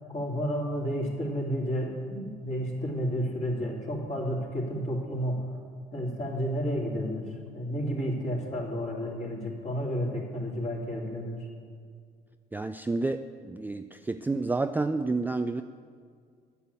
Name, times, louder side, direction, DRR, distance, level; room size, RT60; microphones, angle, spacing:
voice 1, 0.1-5.5 5.9-11.5, equal, 35° left, -3 dB, 3.2 m, -31 dB
voice 2, 12.5-15.6, right 3 dB, 10° right, 8 dB, 0.4 m, -30 dB
10.0 x 6.9 x 8.3 m, 2.1 s
hypercardioid pair, 55°, 19 cm